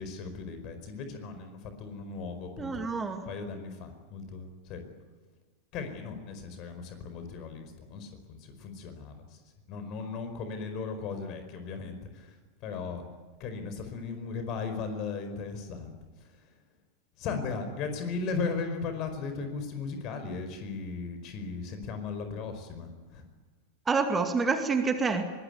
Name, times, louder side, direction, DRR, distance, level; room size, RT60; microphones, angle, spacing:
voice 1, 0.0-4.8 5.7-9.4 9.7-12.4 12.6-13.0 13.4-16.5 17.2-23.2, left 4 dB, 40° left, 7 dB, 4.9 m, -37 dB
voice 2, 2.6-3.3 23.9-25.2, right 4 dB, 15° right, 7 dB, 2.3 m, -27 dB
23.0 x 20.0 x 9.6 m, 1.4 s
figure-of-eight pair, 90°, 0 cm